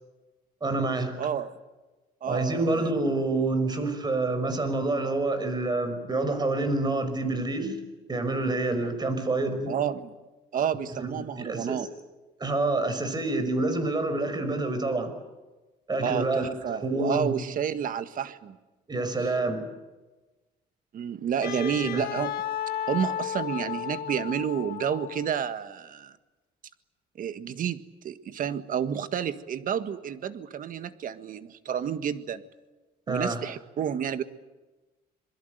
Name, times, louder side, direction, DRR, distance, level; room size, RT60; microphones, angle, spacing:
voice 1, 0.6-1.1 2.3-7.8 8.1-9.7 10.9-11.9 12.4-15.1 15.9-16.5 16.8-17.4 18.9-19.7 21.6-22.1 33.1-33.4, right 2 dB, 25° right, 9 dB, 5.7 m, -27 dB
voice 2, 1.2-1.5 2.2-2.9 9.7-10.1 10.5-11.9 16.0-18.6 20.9-22.3 22.9-26.1 27.2-32.4 33.1-34.2, right 8 dB, 55° right, 11 dB, 1.7 m, -30 dB
Wind instrument woodwind instrument, 21.4-25.5, left 11 dB, 70° left, 1.6 m, -33 dB
27.5 x 22.0 x 8.1 m, 1.2 s
cardioid pair, 110°, 17 cm